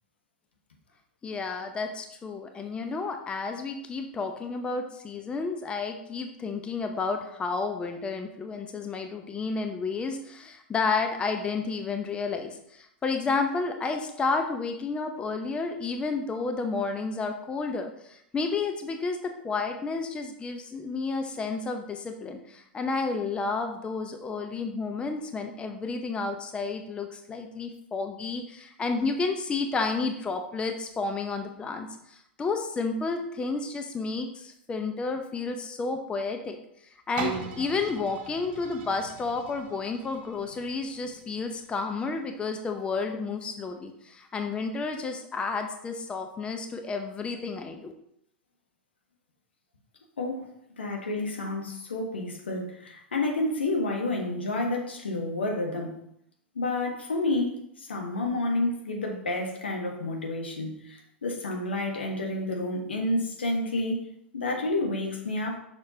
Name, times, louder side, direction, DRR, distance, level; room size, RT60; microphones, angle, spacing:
voice 1, 1.2-47.9, left 4 dB, 15° left, 5 dB, 0.6 m, -31 dB
sound 1, 37.2-42.9 43.5-43.6, right 6 dB, 40° right, 1.5 m, -40 dB
voice 2, 50.2-50.5 50.8-56.0 56.5-64.0 64.3-65.6, left 2 dB, 75° left, 1 dB, 1.3 m, -30 dB
6.4 x 6.0 x 2.8 m, 0.73 s
figure-of-eight pair, 95°, 6 cm